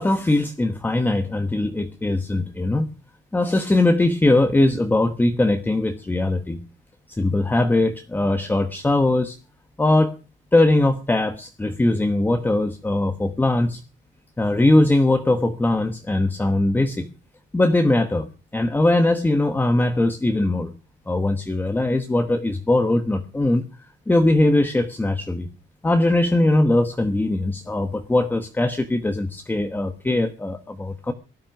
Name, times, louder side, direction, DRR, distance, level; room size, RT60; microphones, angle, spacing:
voice 1, 0.0-2.9 3.3-6.6 7.1-9.4 9.8-10.1 10.5-13.8 14.4-17.1 17.5-18.3 18.5-20.7 21.1-23.7 24.1-25.5 25.8-31.1, left 2 dB, 10° left, 7 dB, 1.1 m, -20 dB
18.5 x 12.0 x 6.0 m, 0.35 s
cardioid pair, 165°, 20 cm